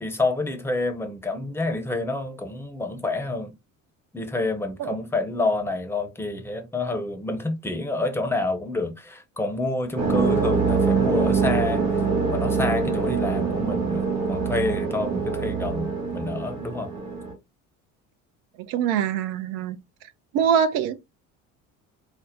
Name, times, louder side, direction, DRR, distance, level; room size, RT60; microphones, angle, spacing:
voice 1, 0.0-3.5 4.1-11.8 12.3-16.9, left 2 dB, 5° left, 0.8 m, -28 dB
sound 1, 10.0-17.3, right 5 dB, 75° right, 1.3 m, -24 dB
voice 2, 18.7-19.8 20.3-20.9, right 8 dB, 55° right, 0.7 m, -23 dB
5.2 x 2.0 x 2.7 m
figure-of-eight pair, 55°, 41 cm